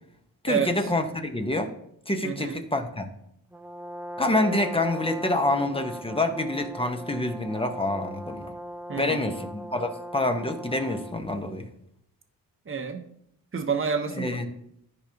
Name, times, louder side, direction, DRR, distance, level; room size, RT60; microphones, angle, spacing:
voice 1, 0.4-1.7 2.1-3.1 4.2-8.5 9.0-11.7 14.1-14.5, left 2 dB, 15° left, 5 dB, 1.0 m, -27 dB
voice 2, 2.2-2.6 8.9-9.3 12.7-13.1 13.5-14.4, right 6 dB, 35° right, 6 dB, 1.0 m, -29 dB
Brass instrument, 3.5-11.3, equal, 5° right, 0.3 m, -39 dB
14.0 x 4.9 x 2.9 m, 0.74 s
cardioid pair, 80°, 36 cm